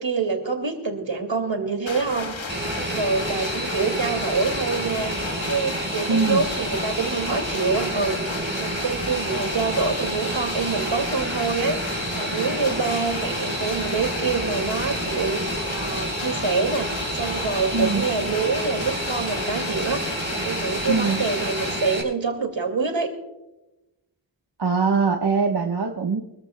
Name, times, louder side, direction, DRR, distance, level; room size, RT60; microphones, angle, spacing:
voice 1, 0.0-16.9 17.1-23.1, right 4 dB, 75° right, 5 dB, 2.4 m, -26 dB
sound 1, 1.9-21.8, left 3 dB, 90° left, 1.5 m, -33 dB
Fixed-wing aircraft airplane, 2.5-22.0, right 1 dB, 25° right, 4.0 m, -30 dB
voice 2, 6.1-6.4 17.7-18.0 20.9-21.2 24.6-26.2, right 4 dB, 60° right, 1 dB, 1.2 m, -22 dB
24.5 x 14.0 x 2.2 m, 0.98 s
wide cardioid pair, 40°, 45 cm